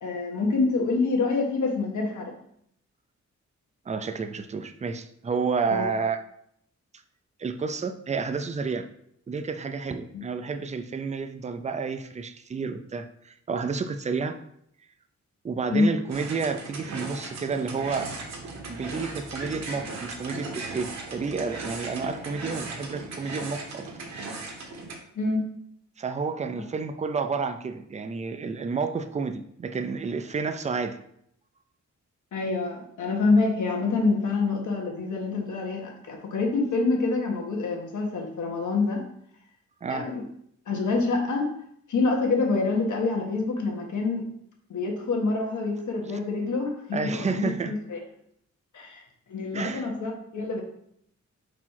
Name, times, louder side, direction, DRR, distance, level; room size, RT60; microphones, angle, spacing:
voice 1, 0.0-2.3 5.7-5.9 10.1-10.2 15.7-15.9 25.1-25.5 32.3-39.0 39.9-40.2 40.7-41.5 41.9-44.3 44.7-48.0 48.7-49.0 49.3-50.6, left 3 dB, 80° left, 1 dB, 1.6 m, -26 dB
voice 2, 3.9-6.2 7.4-8.9 9.3-14.4 15.4-18.1 18.7-23.9 26.0-31.0 39.8-40.1 46.9-47.7 49.5-49.9, right 5 dB, 25° right, 8 dB, 0.4 m, -30 dB
sound 1, 16.1-25.0, right 3 dB, 65° right, 1.3 m, -37 dB
4.9 x 4.7 x 5.7 m, 0.71 s
wide cardioid pair, 175°, 29 cm